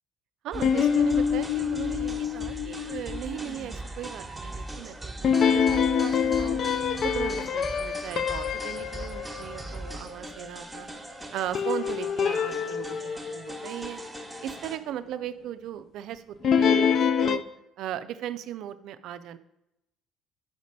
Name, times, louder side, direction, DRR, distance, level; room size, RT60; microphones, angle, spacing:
voice 1, 0.4-6.6 7.0-10.9 11.3-14.0 14.4-16.9 17.2-17.4 17.8-19.4, right 11 dB, 60° right, 12 dB, 0.4 m, -37 dB
sound 1, 0.5-3.7 5.2-9.7 11.5-14.2 16.4-17.4, left 7 dB, 45° left, 0.3 m, -26 dB
sound 2, 0.5-14.8, right 2 dB, 10° right, 1.1 m, -40 dB
5.1 x 5.1 x 5.2 m, 0.86 s
figure-of-eight pair, 50°, 0 cm